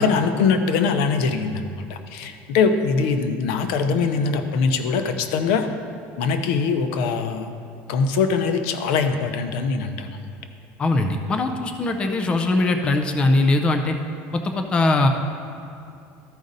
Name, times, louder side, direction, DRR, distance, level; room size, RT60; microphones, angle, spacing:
voice 1, 0.0-5.7 6.2-7.5 7.9-10.2, left 5 dB, 80° left, 8 dB, 0.7 m, -22 dB
voice 2, 10.8-13.9 14.3-15.1, left 2 dB, 20° left, 5 dB, 0.4 m, -21 dB
13.5 x 5.1 x 4.0 m, 2.6 s
cardioid pair, 175°, 6 cm